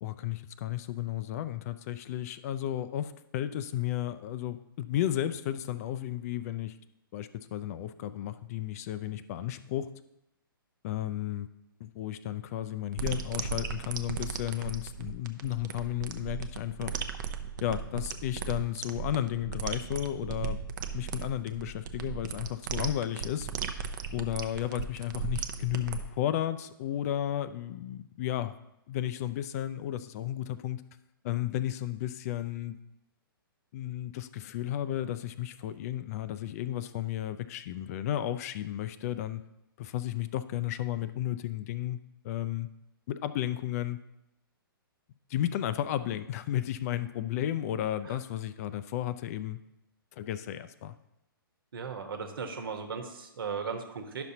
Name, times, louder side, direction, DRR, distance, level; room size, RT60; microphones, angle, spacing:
voice 1, 0.0-6.8 7.1-9.9 10.8-11.5 11.8-17.0 17.6-20.6 20.9-23.5 24.1-28.5 28.9-30.8 31.2-32.7 33.7-39.4 39.8-42.0 42.2-42.7 43.1-44.0 45.3-49.6 50.2-50.9, left 12 dB, 40° left, 13 dB, 0.5 m, -33 dB
sound 1, 13.0-26.0, right 6 dB, 55° right, 0.6 m, -36 dB
voice 2, 51.7-54.2, right 5 dB, 70° right, 5 dB, 1.2 m, -37 dB
10.5 x 6.1 x 2.8 m, 0.88 s
hypercardioid pair, 125°, 12 cm